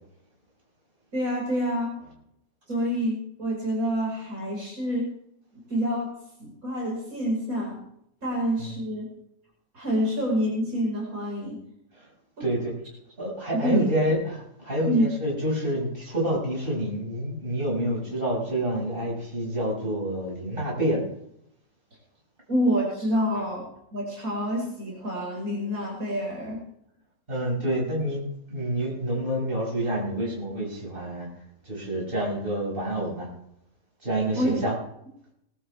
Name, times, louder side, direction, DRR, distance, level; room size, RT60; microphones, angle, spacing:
voice 1, 1.1-2.0 2.7-5.1 5.7-6.1 6.4-7.8 8.2-9.1 9.7-11.6 13.5-13.9 14.9-15.1 22.5-26.6 34.3-34.6, equal, 60° right, -3 dB, 5.6 m, -27 dB
voice 2, 12.4-12.7 13.2-21.0 27.3-28.2 28.5-31.3 31.7-33.3 34.0-34.7, right 1 dB, 35° right, -3 dB, 6.3 m, -28 dB
20.0 x 12.5 x 3.5 m, 0.73 s
omnidirectional pair, 1.7 m